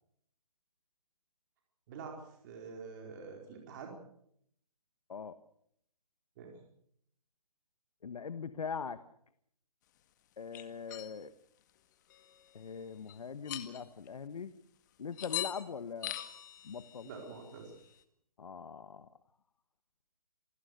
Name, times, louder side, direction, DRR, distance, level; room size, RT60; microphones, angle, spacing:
voice 1, 2.4-3.9 6.4-6.5 17.0-17.7, right 5 dB, 30° right, 1 dB, 4.7 m, -46 dB
voice 2, 8.0-9.0 10.4-11.3 12.5-14.5 15.0-16.2 16.6-17.1 18.4-19.1, left 6 dB, 65° left, 12 dB, 1.4 m, -41 dB
sound 1, 10.5-11.2 12.1-12.7 13.1-13.2 13.5-14.1 15.2-15.7 16.0-17.9, left 12 dB, 30° left, 1.9 m, -42 dB
27.5 x 20.0 x 6.6 m, 0.71 s
hypercardioid pair, 160°, 20 cm